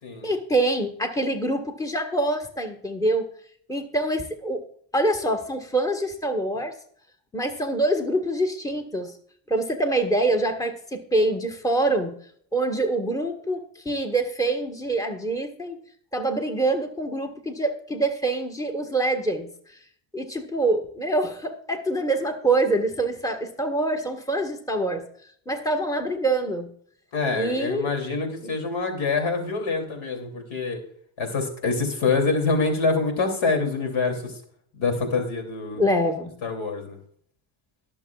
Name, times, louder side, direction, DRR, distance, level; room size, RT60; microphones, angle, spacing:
voice 1, 0.2-3.3 3.7-4.6 4.9-6.7 7.3-9.1 9.5-12.1 12.5-15.8 16.1-19.8 20.1-25.0 25.5-26.7 27.3-27.9 28.4-28.5 35.7-36.3, right 2 dB, 5° left, 6 dB, 1.5 m, -25 dB
voice 2, 27.1-30.8 31.2-34.3 34.7-35.8 36.4-37.0, left 4 dB, 70° left, 5 dB, 3.1 m, -25 dB
21.0 x 7.3 x 2.4 m, 0.63 s
supercardioid pair, 75°, 49 cm